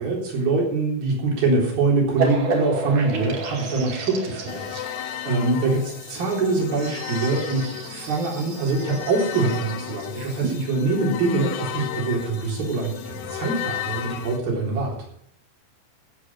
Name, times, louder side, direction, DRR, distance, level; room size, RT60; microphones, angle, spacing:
voice 1, 0.0-5.0 5.3-15.0, right 3 dB, 80° right, -2 dB, 5.7 m, -24 dB
sound 1, 2.2-10.5, right 4 dB, 65° right, 3.8 m, -32 dB
sound 2, 4.5-14.4, left 11 dB, 70° left, 2.1 m, -34 dB
15.5 x 8.2 x 6.1 m, 0.68 s
omnidirectional pair, 4.1 m